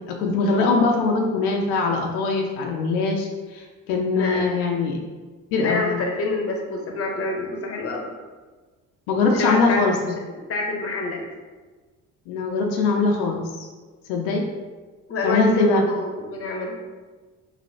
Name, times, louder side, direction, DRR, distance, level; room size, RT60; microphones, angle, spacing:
voice 1, 0.1-5.0 5.5-5.9 9.1-10.0 12.3-13.7 14.1-14.4 15.2-15.8, left 3 dB, 85° left, 1 dB, 0.5 m, -22 dB
voice 2, 4.1-4.5 5.6-8.1 9.3-9.8 10.3-11.2 15.1-16.8, left 3 dB, 40° left, 1 dB, 0.7 m, -27 dB
3.0 x 2.7 x 2.7 m, 1.3 s
supercardioid pair, 65°, 38 cm